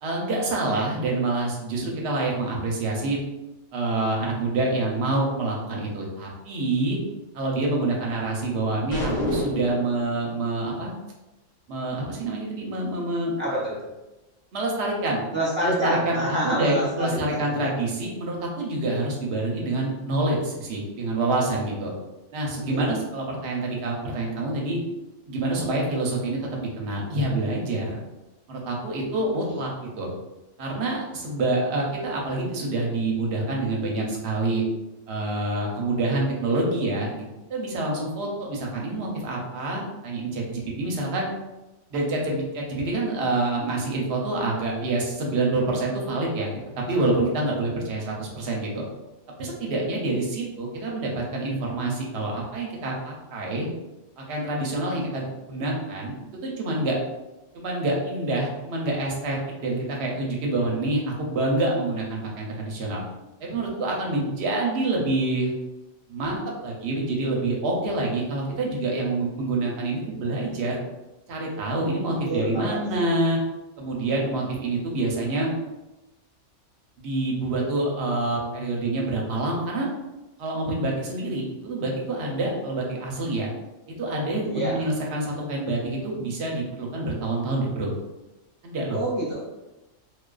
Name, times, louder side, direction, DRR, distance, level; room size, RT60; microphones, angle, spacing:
voice 1, 0.0-3.2 3.7-7.0 7.3-10.9 11.7-13.3 14.5-15.2 15.6-21.9 22.3-24.8 25.3-28.0 28.5-29.7 30.0-30.1 30.6-34.6 35.1-37.1 37.5-41.3 41.9-46.5 46.9-48.8 49.4-53.7 54.2-56.1 56.4-57.0 57.5-63.0 63.4-65.5 66.1-70.8 71.3-73.4 73.8-75.5 77.0-79.9 80.4-83.5 84.0-87.9 88.6-89.0, right 2 dB, 65° right, -2 dB, 0.8 m, -27 dB
sound 1, 8.9-9.9, left 1 dB, 75° left, 1.1 m, -27 dB
voice 2, 13.4-13.9 15.3-17.7 22.7-22.9 29.5-29.6 72.3-73.0 84.5-84.9 88.9-89.4, right 1 dB, 10° right, -9 dB, 0.9 m, -27 dB
2.3 x 2.3 x 2.3 m, 1.0 s
omnidirectional pair, 1.3 m